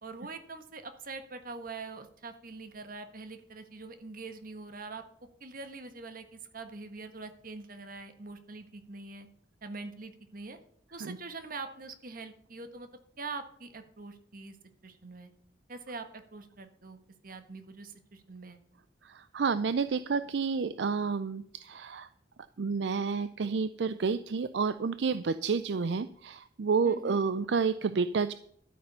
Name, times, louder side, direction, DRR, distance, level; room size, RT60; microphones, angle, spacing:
voice 1, 0.0-5.0 5.4-9.3 9.6-10.6 10.9-12.9 13.2-14.6 14.8-15.3 15.7-17.0 17.2-18.6 26.8-27.2, right 3 dB, 50° right, 8 dB, 1.4 m, -44 dB
voice 2, 19.0-22.1 22.6-28.3, right 5 dB, 70° right, 14 dB, 0.5 m, -30 dB
12.0 x 8.8 x 5.5 m, 0.65 s
head